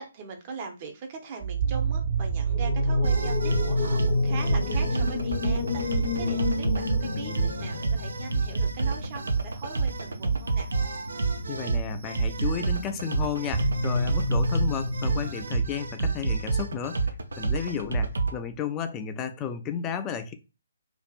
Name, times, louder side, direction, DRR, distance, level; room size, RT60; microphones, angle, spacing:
voice 1, 0.0-10.7, right 5 dB, 30° right, 0.7 m, -40 dB
sound 1, 1.4-11.6 13.5-18.6, right 3 dB, 45° right, 1.1 m, -33 dB
sound 2, 2.5-8.6, left 3 dB, 55° left, 0.8 m, -29 dB
sound 3, 3.0-18.4, right 4 dB, 65° right, 0.5 m, -28 dB
voice 2, 11.5-17.0 17.4-20.3, left 7 dB, 15° left, 0.3 m, -33 dB
2.6 x 2.5 x 2.4 m
figure-of-eight pair, 140°, 0 cm